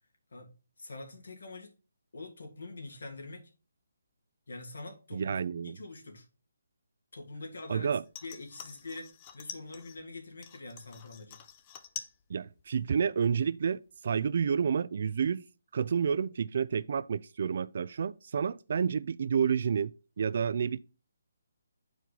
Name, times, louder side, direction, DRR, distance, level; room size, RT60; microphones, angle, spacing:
voice 1, 0.8-1.7 2.1-3.5 4.5-5.4 5.6-6.3 7.1-7.9 8.2-11.4, left 2 dB, 80° left, 2.0 m, -44 dB
voice 2, 5.1-5.8 7.7-8.0 12.3-15.4 15.7-19.9 20.2-20.8, right 6 dB, 50° right, 0.3 m, -29 dB
sound 1, 8.1-10.0 10.4-12.2 12.5-13.1 13.4-13.5, left 8 dB, 20° left, 0.5 m, -46 dB
8.3 x 4.6 x 4.0 m
hypercardioid pair, 165°, 0 cm